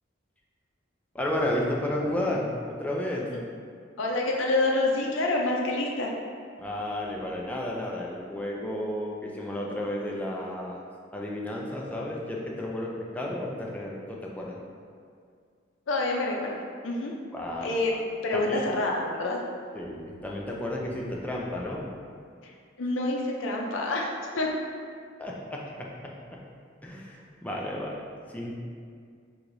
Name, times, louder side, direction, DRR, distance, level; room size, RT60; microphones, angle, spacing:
voice 1, 1.1-3.3 6.6-10.8 11.1-14.6 17.3-17.8 18.3-18.6 19.7-21.9 25.2-26.4 26.8-28.0 28.3-28.5, left 1 dB, 10° left, -3 dB, 0.4 m, -32 dB
voice 2, 4.0-6.1 15.9-16.5 16.8-17.2 17.6-17.9 18.2-19.4 22.4-22.5 22.8-24.5, left 2 dB, 85° left, -1 dB, 0.5 m, -27 dB
6.2 x 2.9 x 2.6 m, 2.2 s
head